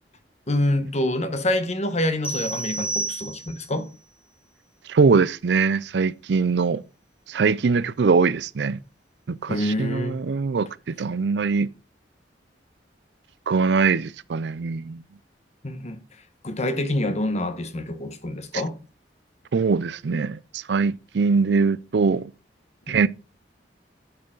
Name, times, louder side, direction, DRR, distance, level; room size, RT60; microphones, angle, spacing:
voice 1, 0.5-3.9 9.5-10.2 15.6-16.0 16.4-18.8 22.9-23.0, left 1 dB, 40° left, 1.3 m, -26 dB
sound 1, 2.2-3.8, right 2 dB, 10° right, 1.2 m, -30 dB
voice 2, 4.9-6.8 7.3-8.8 9.3-11.7 13.5-15.0 18.5-18.6 19.5-22.3 22.9-23.1, right 4 dB, 70° right, 0.4 m, -22 dB
10.5 x 6.5 x 3.9 m
head